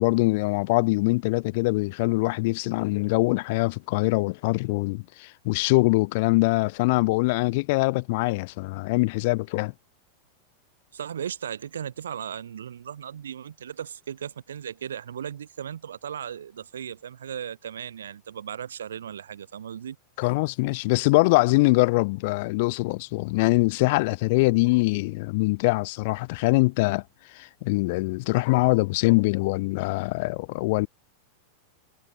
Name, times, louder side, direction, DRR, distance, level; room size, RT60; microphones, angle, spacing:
voice 1, 0.0-9.7 20.2-27.0 27.3-30.9, left 24 dB, 50° left, 0.8 m, -23 dB
voice 2, 10.9-20.0, right 8 dB, 65° right, 2.4 m, -36 dB
figure-of-eight pair, 90°, 0 cm